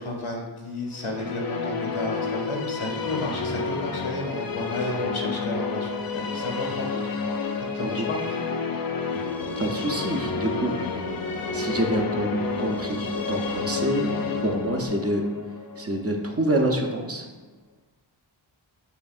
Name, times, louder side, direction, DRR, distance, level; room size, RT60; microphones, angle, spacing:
voice 1, 0.0-7.1 7.6-8.2, left 2 dB, 80° left, 0 dB, 1.0 m, -32 dB
sound 1, 0.9-17.0, left 4 dB, 50° left, 0.4 m, -30 dB
voice 2, 9.1-10.7 11.5-14.2 14.4-15.2 15.8-17.3, right 1 dB, 30° right, 2 dB, 0.6 m, -27 dB
sound 2, 9.4-14.9, left 2 dB, 80° right, 0.8 m, -37 dB
7.1 x 2.7 x 2.5 m, 1.4 s
wide cardioid pair, 50°, 48 cm